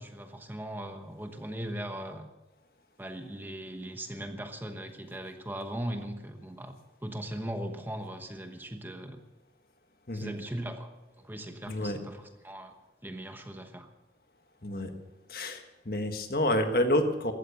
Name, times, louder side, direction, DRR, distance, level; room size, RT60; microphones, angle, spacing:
voice 1, 0.0-2.2 3.0-6.7 7.0-9.2 10.1-10.9 11.2-12.7 13.0-13.9, right 1 dB, 10° right, 6 dB, 1.1 m, -39 dB
voice 2, 11.7-12.0 14.6-14.9 15.3-17.3, left 1 dB, 55° left, 6 dB, 1.6 m, -28 dB
16.0 x 13.0 x 6.8 m, 1.0 s
head